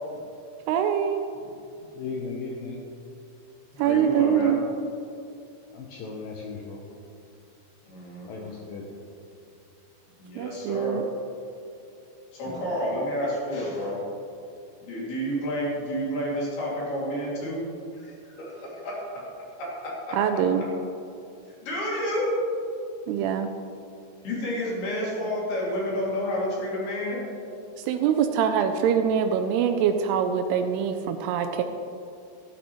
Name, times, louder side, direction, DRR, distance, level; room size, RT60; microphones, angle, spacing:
voice 1, 0.7-1.2 3.8-4.6 10.4-11.0 20.1-20.7 23.1-23.5 27.8-31.6, right 8 dB, 90° right, 6 dB, 2.3 m, -24 dB
voice 2, 1.9-2.8 5.7-6.8 8.2-8.9, left 4 dB, 85° left, -1 dB, 2.0 m, -36 dB
voice 3, 3.7-4.6 7.9-8.5 10.2-11.0 12.3-14.0 14.8-19.2 19.6-20.4 21.6-22.4 24.2-27.3, equal, 60° left, -5 dB, 4.4 m, -30 dB
12.5 x 12.0 x 3.1 m, 2.5 s
omnidirectional pair, 5.3 m